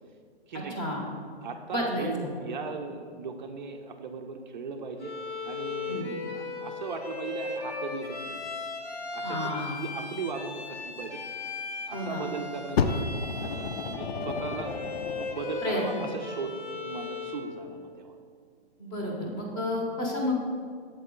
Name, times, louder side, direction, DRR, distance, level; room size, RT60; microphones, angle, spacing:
voice 1, 0.5-0.8 1.4-5.1 5.4-8.5 9.1-9.5 9.8-11.2 11.9-13.1 13.3-14.8 15.2-18.2 19.4-19.5, right 4 dB, 45° right, 5 dB, 0.4 m, -38 dB
voice 2, 1.7-2.1 5.9-6.1 9.2-9.7 11.9-12.2 15.6-15.8 18.8-20.4, left 1 dB, 15° left, -1 dB, 0.6 m, -31 dB
Bowed string instrument, 5.0-17.5, left 3 dB, 85° left, 1.1 m, -37 dB
Fire, 12.8-15.6 16.4-16.5, left 5 dB, 65° left, 0.5 m, -31 dB
7.4 x 4.2 x 3.7 m, 2.1 s
hypercardioid pair, 140°, 33 cm